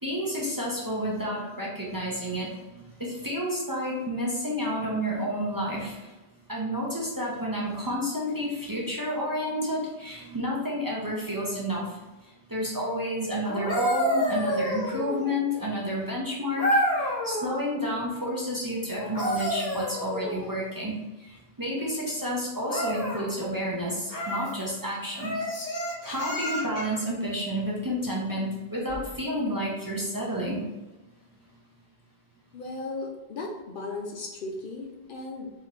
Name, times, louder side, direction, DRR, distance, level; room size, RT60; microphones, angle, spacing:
voice 1, 0.0-6.1 6.5-12.0 12.5-20.9 21.2-25.3 26.0-30.6, equal, 25° right, -4 dB, 0.6 m, -30 dB
sound 1, 13.4-15.4 16.6-17.5 18.9-20.6 22.6-23.3 24.1-24.5 25.2-27.0 28.8-29.0, equal, 40° left, 1.1 m, -29 dB
voice 2, 32.5-35.5, left 3 dB, 60° left, 1 dB, 0.7 m, -36 dB
4.1 x 2.8 x 3.1 m, 1.1 s
omnidirectional pair, 1.0 m